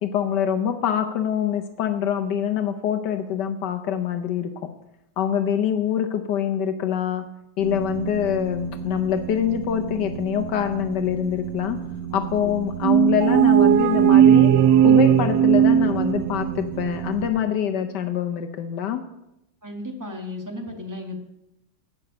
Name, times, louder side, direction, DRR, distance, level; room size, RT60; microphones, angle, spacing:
voice 1, 0.0-4.7 5.2-7.3 7.6-11.8 12.1-14.5 14.8-19.0, left 9 dB, 70° left, 7 dB, 1.3 m, -25 dB
sound 1, 7.6-17.3, right 8 dB, 65° right, 2.1 m, -33 dB
sound 2, 12.8-16.6, right 10 dB, 85° right, 1.3 m, -16 dB
voice 2, 19.6-21.2, left 1 dB, 10° right, 3 dB, 1.3 m, -34 dB
9.1 x 8.6 x 6.6 m, 0.86 s
omnidirectional pair, 2.0 m